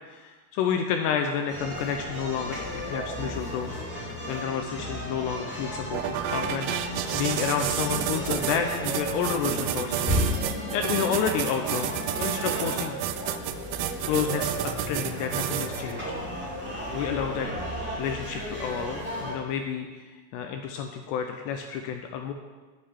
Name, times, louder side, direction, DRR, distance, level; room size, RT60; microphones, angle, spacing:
voice 1, 0.1-10.3 10.7-13.0 14.1-16.2 16.9-19.9 20.3-22.3, left 7 dB, 80° left, 5 dB, 2.4 m, -30 dB
sound 1, 1.5-19.3, equal, 5° right, 1.2 m, -34 dB
sound 2, 5.9-15.9, right 12 dB, 90° right, 3.1 m, -30 dB
9.9 x 5.6 x 8.0 m, 1.3 s
omnidirectional pair, 5.4 m